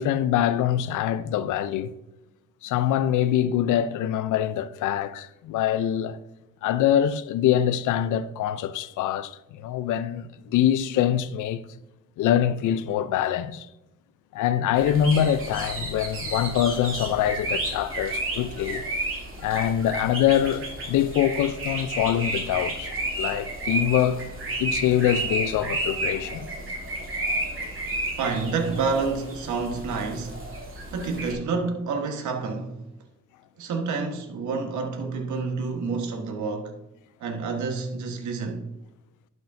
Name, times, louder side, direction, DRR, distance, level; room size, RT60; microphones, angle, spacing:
voice 1, 0.0-1.9 2.6-6.2 6.6-11.6 12.2-13.7 14.3-18.8 19.4-24.3 24.6-26.5, left 10 dB, 80° left, 0.6 m, -24 dB
sound 1, 14.8-31.3, right 2 dB, 45° right, 2.6 m, -32 dB
voice 2, 28.2-30.4 30.9-32.7 33.6-36.7 37.2-38.6, right 4 dB, 70° right, 1.4 m, -28 dB
11.5 x 6.1 x 2.6 m
cardioid pair, 90°, 30 cm